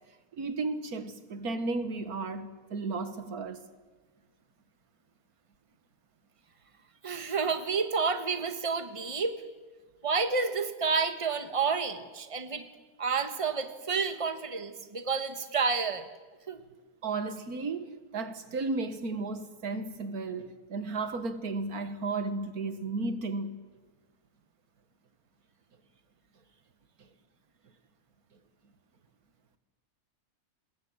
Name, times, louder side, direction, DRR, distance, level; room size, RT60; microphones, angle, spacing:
voice 1, 0.3-3.7 17.0-23.5, right 3 dB, 85° right, 2.0 m, -34 dB
voice 2, 7.0-9.4 10.0-12.7 13.0-16.1 16.5-16.6, right 5 dB, 25° right, 1.5 m, -30 dB
26.0 x 20.5 x 8.8 m
omnidirectional pair, 1.5 m